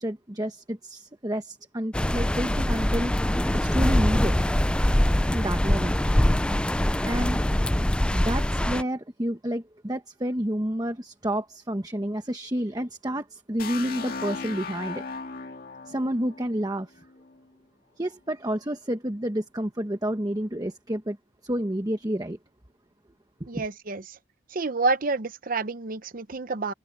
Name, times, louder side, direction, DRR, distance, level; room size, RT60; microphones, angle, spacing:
voice 1, 0.0-3.1 3.5-4.3 5.3-6.0 7.0-7.4 8.1-15.0 15.9-17.0 18.0-21.2 21.4-22.4 23.4-23.6, equal, 20° right, 1.2 m, -30 dB
sound 1, 1.9-8.8, left 1 dB, 5° left, 0.4 m, -23 dB
sound 2, 13.6-17.4, left 4 dB, 50° left, 2.1 m, -37 dB
voice 2, 23.5-24.2 24.5-26.7, right 3 dB, 50° right, 0.8 m, -28 dB
head